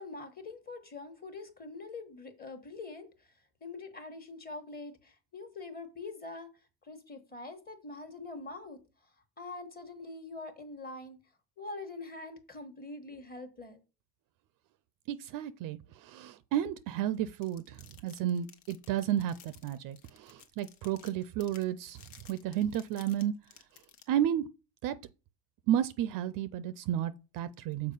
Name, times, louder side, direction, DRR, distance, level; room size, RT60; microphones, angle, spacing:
voice 1, 0.0-3.3 3.6-6.5 6.8-8.8 9.4-11.2 11.6-13.8, left 3 dB, 20° left, 1.2 m, -44 dB
voice 2, 15.1-17.8 18.0-22.0 22.3-23.3 24.1-24.5 24.8-25.0 25.7-27.9, right 11 dB, 50° right, 0.4 m, -32 dB
sound 1, 17.4-24.0, left 9 dB, 65° left, 1.3 m, -55 dB
6.6 x 4.7 x 5.4 m
cardioid pair, 150°, 44 cm